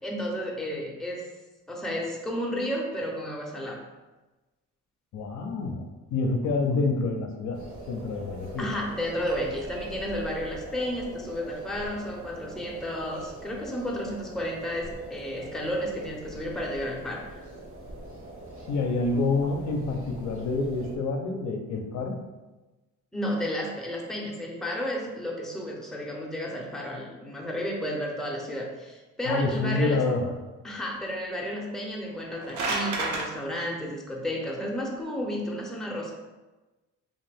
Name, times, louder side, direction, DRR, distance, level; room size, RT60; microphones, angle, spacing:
voice 1, 0.0-1.3 1.7-3.8 8.6-17.2 23.1-30.1 30.6-36.1, equal, ahead, -2 dB, 0.6 m, -32 dB
voice 2, 5.1-7.6 7.9-8.7 18.7-22.2 29.2-30.3, left 3 dB, 65° left, 3 dB, 0.5 m, -27 dB
sound 1, 7.5-21.0, right 1 dB, 50° right, 0.9 m, -43 dB
sound 2, 32.1-33.3, right 3 dB, 70° right, 0.7 m, -29 dB
2.6 x 2.4 x 3.3 m, 1.1 s
cardioid pair, 90°, 30 cm